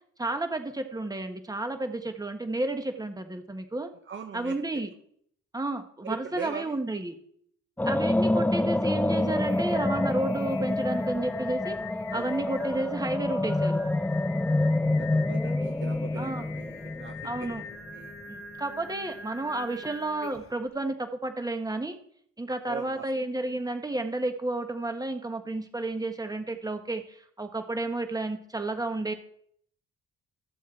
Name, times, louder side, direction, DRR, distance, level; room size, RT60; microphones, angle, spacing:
voice 1, 0.2-3.9 4.3-4.9 5.5-7.2 7.8-11.8 12.1-13.8 16.2-16.4 17.2-17.6 18.3-22.0 22.4-29.1, right 2 dB, 10° right, 7 dB, 1.6 m, -31 dB
voice 2, 4.1-4.6 6.0-6.7 12.1-12.4 15.0-17.6 17.9-18.1 22.7-23.1, right 7 dB, 40° right, 7 dB, 0.8 m, -40 dB
sound 1, 7.8-17.9, left 2 dB, 5° left, 0.5 m, -27 dB
Singing, 8.9-20.6, left 5 dB, 45° left, 1.6 m, -44 dB
14.5 x 7.1 x 4.4 m, 0.65 s
cardioid pair, 90°, 30 cm